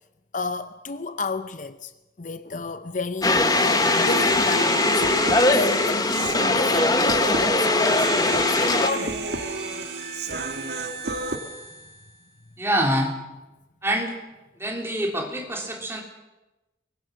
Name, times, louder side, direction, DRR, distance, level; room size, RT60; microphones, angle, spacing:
voice 1, 0.3-1.9 2.2-9.2, left 3 dB, 45° left, 0.7 m, -32 dB
sound 1, 3.2-8.9, left 2 dB, 20° left, 1.1 m, -21 dB
Human voice, 3.3-11.4, right 3 dB, 65° right, 1.9 m, -31 dB
sound 2, 4.8-12.4, right 2 dB, 35° right, 4.4 m, -40 dB
voice 2, 12.6-13.1 13.8-14.2 14.6-16.0, equal, 15° right, 3.2 m, -25 dB
23.5 x 20.5 x 6.3 m
head